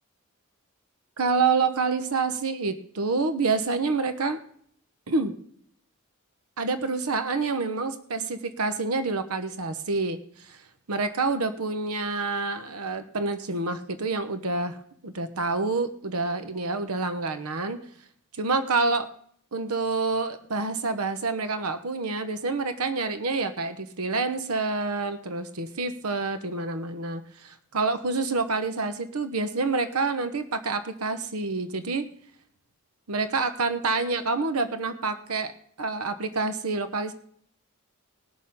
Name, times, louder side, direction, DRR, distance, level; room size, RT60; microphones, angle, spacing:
voice 1, 1.2-4.4 5.1-5.4 6.6-10.6 10.9-14.8 15.0-17.8 18.4-19.1 19.5-32.1 33.1-35.5 35.8-37.1, right 3 dB, 90° right, 10 dB, 1.0 m, -27 dB
19.5 x 6.6 x 5.5 m, 0.63 s
head